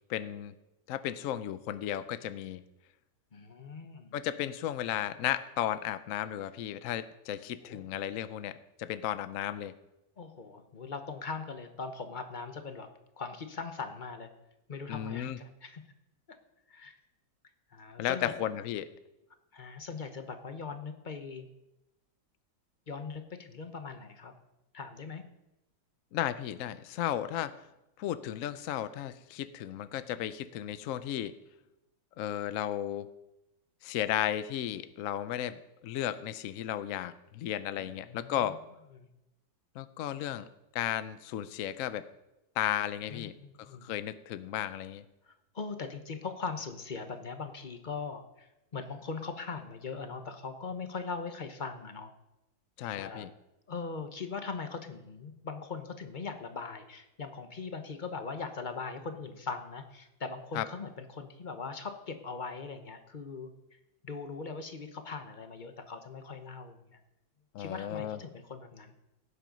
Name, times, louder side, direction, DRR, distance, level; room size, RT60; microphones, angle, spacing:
voice 1, 0.1-0.5 0.9-2.6 4.1-9.7 14.9-15.4 18.0-18.9 26.1-27.6 28.0-31.3 32.2-33.1 33.8-38.6 39.8-40.5 40.7-42.0 42.6-43.3 43.6-45.0 52.8-53.3 60.5-60.7 67.5-68.2, left 11 dB, 75° left, 13 dB, 0.7 m, -34 dB
voice 2, 3.3-4.1 7.6-7.8 10.2-12.9 13.2-14.3 14.7-15.8 16.7-17.0 17.7-18.3 19.5-21.5 22.9-24.3 24.7-25.2 37.8-38.4 38.9-39.1 43.1-43.9 45.3-52.1 52.9-53.3 53.7-63.5 64.0-67.0 67.6-68.9, left 4 dB, 35° left, 7 dB, 0.9 m, -40 dB
18.0 x 7.6 x 5.3 m, 0.91 s
omnidirectional pair, 2.1 m